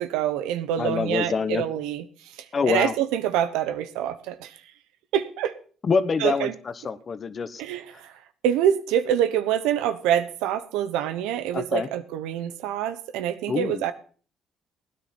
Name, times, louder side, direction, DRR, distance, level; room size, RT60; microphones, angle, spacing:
voice 1, 0.0-2.0 2.7-4.6 5.1-5.6 6.2-6.6 7.6-8.1 8.4-13.9, right 10 dB, 90° right, 12 dB, 0.9 m, -26 dB
voice 2, 0.8-1.6 2.5-2.9 5.8-6.5 6.8-7.6 11.5-11.9 13.5-13.8, left 5 dB, 40° left, 14 dB, 1.0 m, -25 dB
16.5 x 9.8 x 4.3 m, 0.41 s
supercardioid pair, 80°, 0 cm